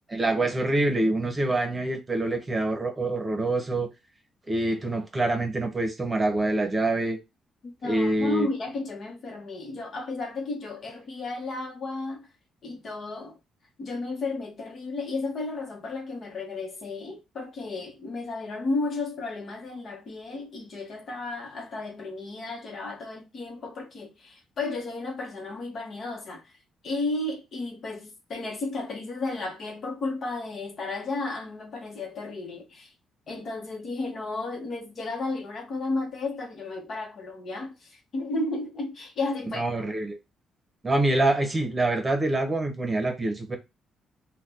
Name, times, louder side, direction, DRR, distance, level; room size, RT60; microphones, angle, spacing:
voice 1, 0.1-3.9 4.5-7.2 7.8-8.5 39.5-40.2 40.8-43.6, right 2 dB, 20° right, 1.0 m, -25 dB
voice 2, 7.8-12.3 12.6-13.4 13.8-26.5 26.8-32.9 33.3-39.6, left 3 dB, 50° left, 1.1 m, -33 dB
2.7 x 2.3 x 3.6 m
cardioid pair, 90°, 0 cm